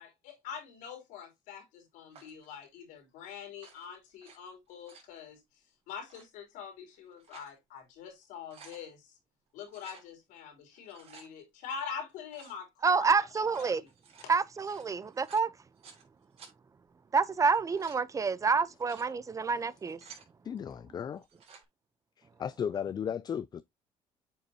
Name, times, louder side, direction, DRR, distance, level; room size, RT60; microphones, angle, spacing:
voice 1, 0.0-5.4 5.9-9.1 9.5-13.1 13.3-13.9 14.2-14.3, left 7 dB, 90° left, 3.4 m, -44 dB
sound 1, 2.1-2.5 3.5-4.4 4.7-5.1 6.0-6.3 6.9-7.6 8.0-8.1 8.3-8.8 9.7-10.1 10.7-11.3 12.3-12.6 13.3-16.0 16.4-16.5 17.4-18.0 18.6-19.1 19.7-20.3 21.2-21.6, right 5 dB, 55° right, 3.6 m, -55 dB
voice 2, 12.8-13.8 14.3-15.5 17.1-20.0, right 5 dB, 25° right, 0.6 m, -28 dB
voice 3, 20.4-21.3 22.2-23.6, left 8 dB, 35° left, 0.4 m, -35 dB
8.1 x 5.5 x 2.8 m
cardioid pair, 110°, 13 cm